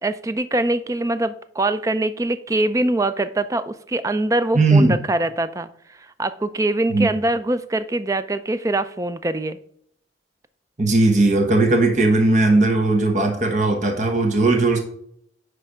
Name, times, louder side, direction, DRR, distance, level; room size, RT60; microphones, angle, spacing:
voice 1, 0.0-9.6, right 2 dB, 15° right, 12 dB, 0.3 m, -23 dB
voice 2, 4.5-4.9 6.9-7.1 10.8-14.8, right 2 dB, 40° right, 2 dB, 1.1 m, -17 dB
9.8 x 3.4 x 5.0 m, 0.67 s
head